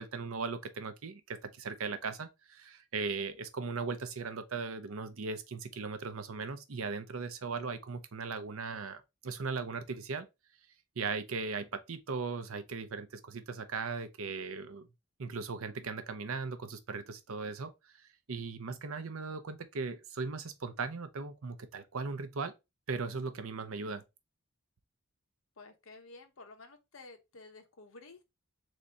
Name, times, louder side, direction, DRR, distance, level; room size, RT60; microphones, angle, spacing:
voice 1, 0.0-10.3 11.0-14.9 15.2-17.7 18.3-22.5 22.9-24.0, right 4 dB, 70° right, 0.6 m, -38 dB
voice 2, 25.6-28.2, left 3 dB, 65° left, 0.9 m, -52 dB
3.6 x 3.2 x 4.0 m
head